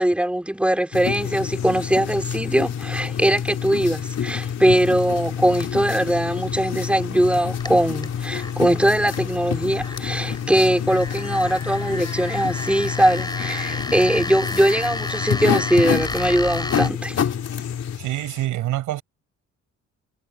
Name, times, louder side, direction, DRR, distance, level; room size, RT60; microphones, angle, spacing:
voice 1, 0.0-17.3, right 1 dB, 5° right, 4.2 m, -21 dB
sound 1, 0.9-18.0, left 8 dB, 55° left, 3.4 m, -28 dB
sound 2, 1.2-18.5, left 10 dB, 70° left, 6.6 m, -44 dB
sound 3, 7.6-16.9, left 2 dB, 15° left, 6.0 m, -33 dB
voice 2, 18.0-19.0, right 14 dB, 90° right, 6.8 m, -26 dB
cardioid pair, 90°, 30 cm